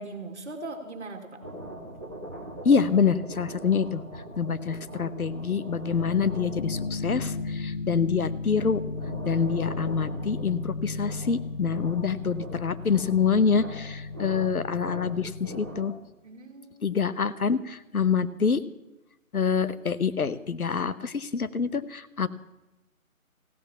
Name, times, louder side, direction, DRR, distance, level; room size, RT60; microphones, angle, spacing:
voice 1, 0.0-1.4 16.2-17.0, right 2 dB, 55° right, 5 dB, 2.3 m, -40 dB
sound 1, 1.4-16.1, right 1 dB, 10° right, 0.8 m, -42 dB
voice 2, 2.6-4.0 4.4-8.8 9.2-15.9 16.8-18.6 19.3-22.3, left 6 dB, 90° left, 15 dB, 1.0 m, -26 dB
sound 2, 5.9-15.8, left 4 dB, 40° left, 1.0 m, -35 dB
15.5 x 11.0 x 7.2 m, 0.96 s
figure-of-eight pair, 160°, 42 cm